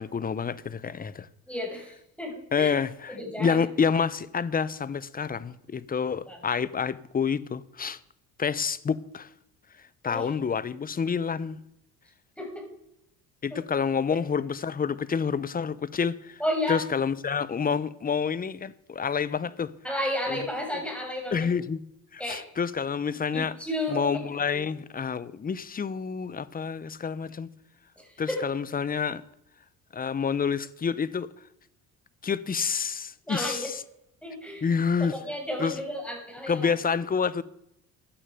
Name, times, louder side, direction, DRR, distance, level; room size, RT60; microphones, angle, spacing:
voice 1, 0.0-1.3 2.5-8.0 8.4-9.3 10.0-11.6 13.4-16.4 16.7-19.7 20.3-20.4 21.3-21.8 22.1-23.5 23.9-27.5 28.2-29.2 29.9-31.3 32.2-33.8 34.6-35.2 35.6-35.8 36.5-37.4, left 6 dB, 25° left, 0.8 m, -28 dB
voice 2, 1.5-2.7 3.2-3.6 6.3-6.4 10.1-10.3 12.4-12.6 13.5-13.6 14.1-14.2 16.4-16.8 19.8-21.5 22.2-22.4 23.3-24.2 24.5-24.6 28.3-28.4 33.2-33.7 34.2-34.7 35.0-36.7, left 1 dB, 5° left, 7.2 m, -32 dB
16.0 x 11.0 x 5.1 m
supercardioid pair, 85°, 35 cm